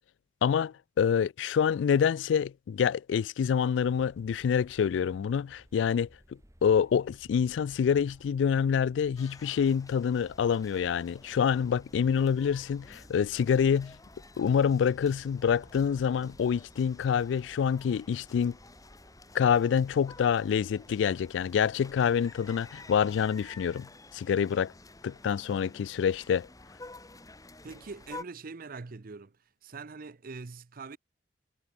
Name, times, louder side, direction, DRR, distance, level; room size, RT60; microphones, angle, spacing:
voice 1, 0.4-6.1 6.6-13.9 14.4-18.5 19.3-23.9 24.1-24.7 25.0-26.5, left 7 dB, 85° left, 0.3 m, -26 dB
sound 1, 3.8-23.7, equal, 15° right, 2.8 m, -58 dB
sound 2, 9.2-28.2, left 2 dB, 20° left, 2.0 m, -52 dB
voice 2, 27.6-29.4 29.6-31.0, right 4 dB, 50° right, 0.7 m, -43 dB
head